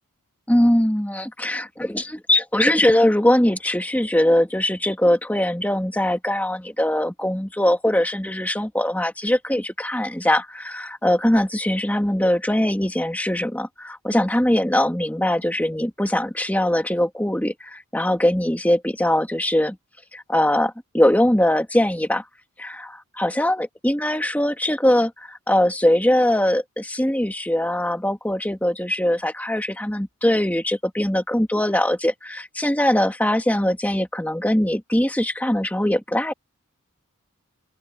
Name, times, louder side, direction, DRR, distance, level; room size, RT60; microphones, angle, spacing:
voice 1, 0.5-19.8 20.1-22.2 22.6-36.3, left 1 dB, 5° left, 1.7 m, -21 dB
open air
head